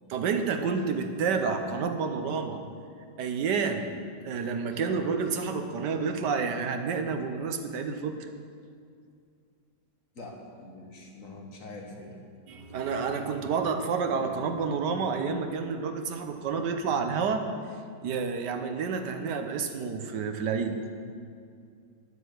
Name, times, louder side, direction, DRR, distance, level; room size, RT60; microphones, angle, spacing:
voice 1, 0.1-2.6 3.2-4.0 4.2-8.2 12.5-17.4 18.0-20.8, right 5 dB, 90° right, 6 dB, 1.5 m, -29 dB
voice 2, 10.1-12.2, left 2 dB, 55° left, 1 dB, 1.7 m, -44 dB
9.9 x 7.8 x 7.9 m, 2.3 s
omnidirectional pair, 1.8 m